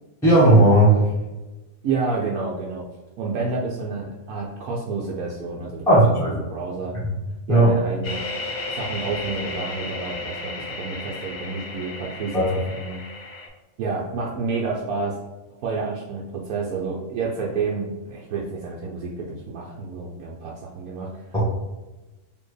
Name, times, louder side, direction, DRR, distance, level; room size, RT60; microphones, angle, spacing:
voice 1, 0.2-1.0 5.9-6.4 7.5-7.7 12.3-12.5 21.3-21.4, right 1 dB, ahead, -9 dB, 1.1 m, -15 dB
voice 2, 1.8-2.9 3.2-6.0 6.5-7.0 7.5-8.3 8.7-13.0 13.8-15.2 15.6-21.2, right 4 dB, 85° right, -3 dB, 1.1 m, -29 dB
sound 1, 8.0-13.5, left 2 dB, 45° left, 0.6 m, -33 dB
4.2 x 2.9 x 3.2 m, 1.1 s
omnidirectional pair, 1.5 m